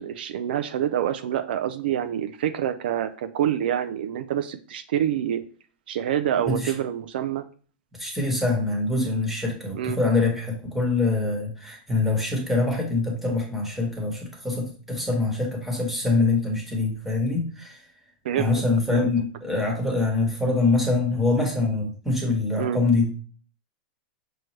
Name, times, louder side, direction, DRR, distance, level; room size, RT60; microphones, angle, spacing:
voice 1, 0.0-5.4 5.9-7.4 9.7-10.0 18.2-18.5 18.9-19.1 22.6-22.8, right 10 dB, 80° right, 10 dB, 0.4 m, -26 dB
voice 2, 8.0-17.8 18.4-23.1, left 3 dB, 5° right, 1 dB, 1.2 m, -24 dB
6.1 x 2.2 x 3.1 m, 0.39 s
supercardioid pair, 140°, 5 cm